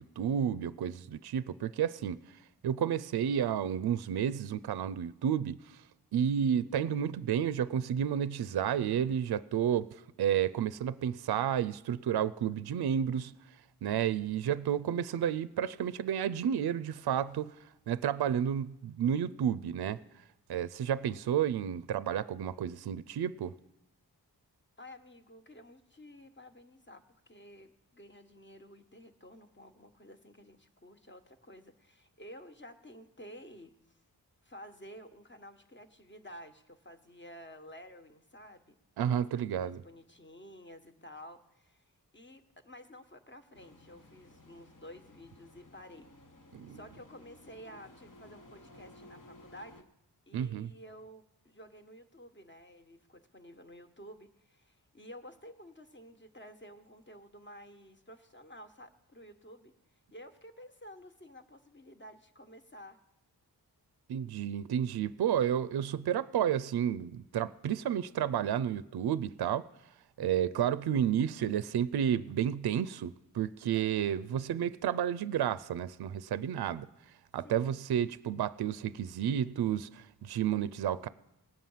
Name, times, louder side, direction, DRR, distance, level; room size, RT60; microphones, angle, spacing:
voice 1, 0.0-2.2 2.6-5.8 6.1-13.3 13.8-17.5 17.9-20.0 20.5-23.5 39.0-39.8 46.5-46.8 50.3-50.7 64.1-69.7 70.2-76.9 77.3-81.1, right 9 dB, 75° right, 17 dB, 0.5 m, -31 dB
voice 2, 20.8-21.2 24.8-34.0 34.4-38.8 39.1-46.1 46.7-49.9 50.3-63.0 73.7-74.2 77.4-77.8, equal, 30° left, 7 dB, 1.3 m, -52 dB
sound 1, 43.5-49.8, left 1 dB, 50° left, 1.3 m, -56 dB
18.5 x 7.5 x 5.6 m, 0.90 s
cardioid pair, 55°, 39 cm